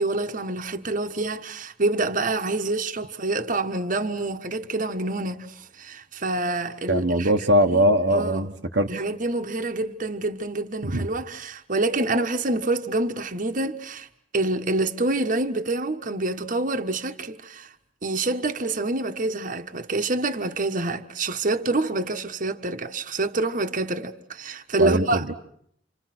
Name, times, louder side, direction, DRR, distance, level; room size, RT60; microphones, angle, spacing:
voice 1, 0.0-7.3 7.7-7.8 8.1-8.5 8.9-14.1 14.3-17.7 18.0-25.2, right 2 dB, 45° right, 1.4 m, -27 dB
voice 2, 6.9-8.9 10.8-11.1 24.8-25.3, equal, 75° right, 1.3 m, -21 dB
29.5 x 27.0 x 6.1 m
head